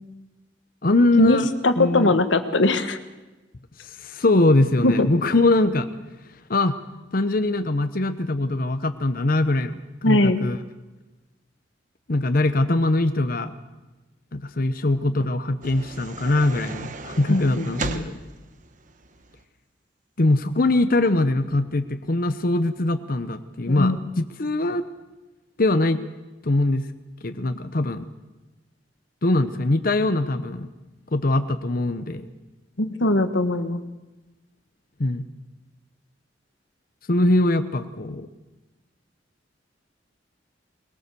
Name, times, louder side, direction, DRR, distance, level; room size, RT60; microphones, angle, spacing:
voice 1, 0.8-1.5 1.8-2.2 3.8-5.9 6.5-6.8 7.1-10.6 12.1-13.5 14.3-18.2 20.2-24.8 25.6-26.0 26.4-26.9 27.2-28.1 29.2-30.7 31.1-32.3 35.0-35.3 37.1-38.3, left 2 dB, 50° left, 9 dB, 0.9 m, -22 dB
voice 2, 1.6-3.0 4.8-5.1 10.0-10.4 17.3-18.0 23.7-24.0 32.8-33.8, left 2 dB, 85° left, 9 dB, 1.4 m, -20 dB
sound 1, 15.6-19.4, right 3 dB, 45° right, 1.4 m, -36 dB
22.5 x 21.0 x 6.9 m, 1.1 s
head